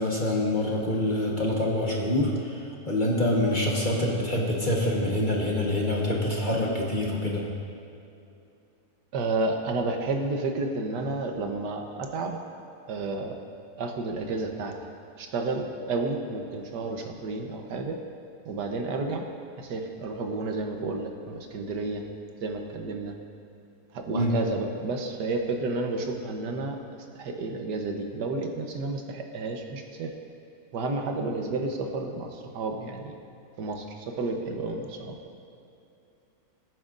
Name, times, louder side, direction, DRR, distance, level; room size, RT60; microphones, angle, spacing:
voice 1, 0.0-7.4 24.1-24.3, left 1 dB, 30° left, -3 dB, 1.2 m, -26 dB
voice 2, 9.1-12.4 12.9-13.3 13.8-14.7 15.2-18.0 18.4-19.2 19.6-22.0 22.4-23.1 23.9-26.8 27.1-30.1 30.7-33.1 33.6-35.1, right 3 dB, 75° right, 3 dB, 1.5 m, -31 dB
19.5 x 9.4 x 2.5 m, 2.7 s
omnidirectional pair, 1.8 m